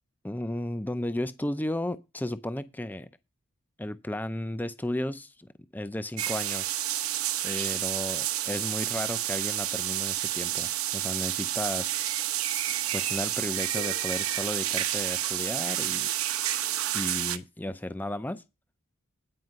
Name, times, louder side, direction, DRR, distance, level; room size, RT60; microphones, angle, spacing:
voice 1, 0.2-3.1 3.8-6.8 7.4-12.0 12.9-16.1 16.9-18.4, left 1 dB, 10° left, 0.5 m, -34 dB
sound 1, 6.2-17.4, right 13 dB, 75° right, 0.9 m, -30 dB
9.5 x 5.0 x 7.4 m
head